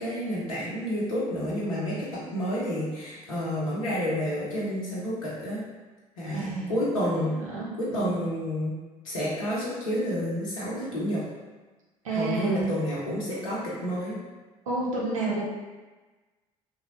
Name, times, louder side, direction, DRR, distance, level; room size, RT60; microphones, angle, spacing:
voice 1, 0.0-5.6 6.2-7.4 7.8-8.8 9.0-11.2 12.1-14.2, equal, 85° left, -7 dB, 0.8 m, -30 dB
voice 2, 6.3-8.1 12.0-12.8 14.7-15.5, right 3 dB, 85° right, -4 dB, 0.6 m, -30 dB
2.9 x 2.2 x 2.9 m, 1.3 s
figure-of-eight pair, 50°, 17 cm